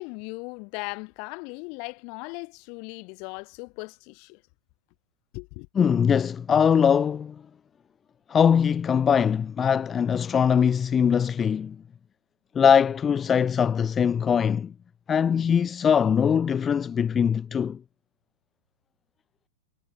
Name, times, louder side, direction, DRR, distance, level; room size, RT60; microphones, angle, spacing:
voice 1, 0.0-4.4 5.3-5.7, left 34 dB, 50° left, 5.3 m, -38 dB
voice 2, 5.8-7.4 8.3-11.8 12.5-14.7 15.1-17.8, left 7 dB, 20° left, 0.8 m, -22 dB
hypercardioid pair, 125°, 0 cm